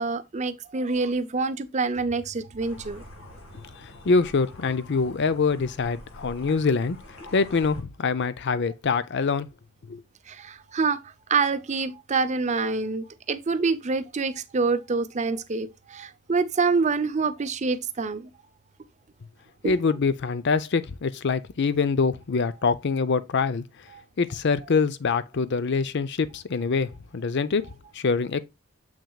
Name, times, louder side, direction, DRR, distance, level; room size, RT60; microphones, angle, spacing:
voice 1, 0.0-3.0 10.3-11.0 11.3-18.3 19.6-19.7, right 4 dB, 30° right, 0.5 m, -26 dB
sound 1, 2.6-7.8, left 1 dB, 65° left, 1.8 m, -46 dB
voice 2, 3.8-7.0 7.3-9.5 9.9-10.0 19.6-23.6 24.2-28.4, left 4 dB, 50° left, 0.5 m, -25 dB
7.3 x 6.1 x 2.3 m
head